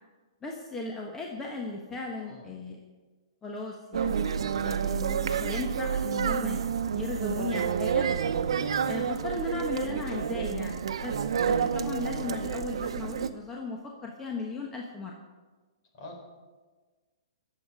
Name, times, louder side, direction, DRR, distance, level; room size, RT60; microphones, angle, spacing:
voice 1, 0.4-2.8 3.4-4.2 4.6-8.1 8.9-15.2, left 3 dB, 10° left, 0 dB, 1.2 m, -36 dB
voice 2, 1.9-2.6 15.9-16.2, left 2 dB, 45° left, 1 dB, 4.3 m, -47 dB
sound 1, 3.9-13.3, right 7 dB, 75° right, 0.9 m, -29 dB
20.5 x 7.6 x 4.9 m, 1.3 s
hypercardioid pair, 150°, 3 cm